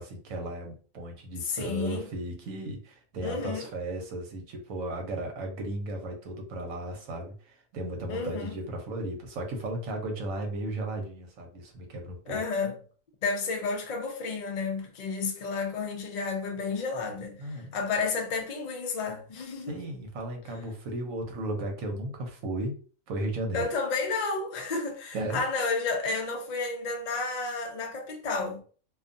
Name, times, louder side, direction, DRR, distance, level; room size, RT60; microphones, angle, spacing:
voice 1, 0.0-12.4 17.4-17.7 19.7-22.8 23.1-23.7 25.1-25.4, right 1 dB, 75° right, 1.1 m, -35 dB
voice 2, 1.5-2.1 3.2-3.7 8.1-8.6 12.3-12.7 13.2-19.8 23.5-28.6, left 4 dB, 65° left, 0.4 m, -31 dB
2.5 x 2.3 x 2.5 m
omnidirectional pair, 1.4 m